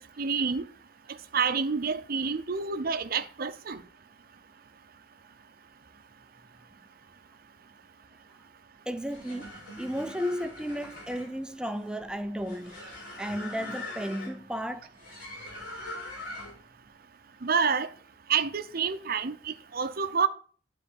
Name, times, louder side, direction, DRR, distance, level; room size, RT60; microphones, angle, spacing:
voice 1, 0.2-0.6 1.3-3.8 17.4-17.9 18.3-19.4 19.7-20.3, right 5 dB, 55° right, 0.6 m, -28 dB
voice 2, 8.9-12.8 13.2-14.9, equal, 5° right, 0.4 m, -34 dB
sound 1, 9.0-16.7, left 2 dB, 55° left, 4.1 m, -43 dB
9.6 x 3.9 x 7.0 m
head